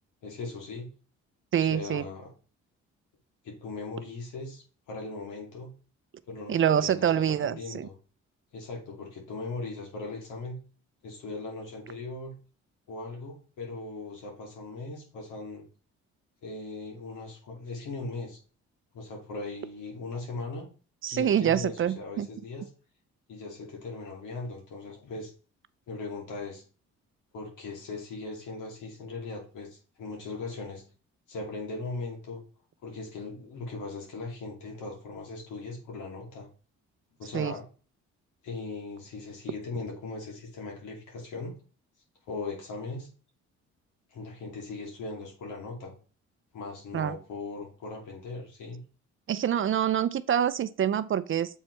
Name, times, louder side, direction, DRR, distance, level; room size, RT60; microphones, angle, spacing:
voice 1, 0.2-0.9 1.6-2.3 3.4-5.7 6.3-7.9 8.5-10.6 11.0-12.3 12.9-15.6 16.4-18.4 18.9-20.7 21.1-22.7 23.3-25.3 25.9-26.6 27.3-30.8 31.3-32.4 32.8-36.5 37.2-37.6 38.4-41.5 42.3-43.1 44.1-45.9 46.5-48.8, left 3 dB, 80° left, 2.7 m, -39 dB
voice 2, 1.5-2.0 6.5-7.9 21.0-22.3 37.3-37.5 46.9-47.1 49.3-51.6, right 9 dB, 45° right, 0.5 m, -26 dB
7.3 x 4.5 x 3.2 m
cardioid pair, 90°, 30 cm